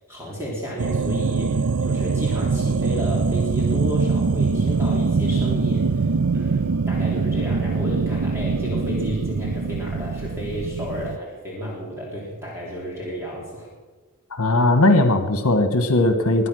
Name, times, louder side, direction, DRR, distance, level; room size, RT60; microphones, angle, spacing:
voice 1, 0.1-13.7, equal, 10° right, -4 dB, 3.4 m, -32 dB
sound 1, 0.8-11.2, right 4 dB, 90° right, 0.6 m, -23 dB
voice 2, 14.3-16.5, left 2 dB, 75° left, 8 dB, 1.4 m, -18 dB
22.0 x 9.9 x 6.4 m, 1.4 s
head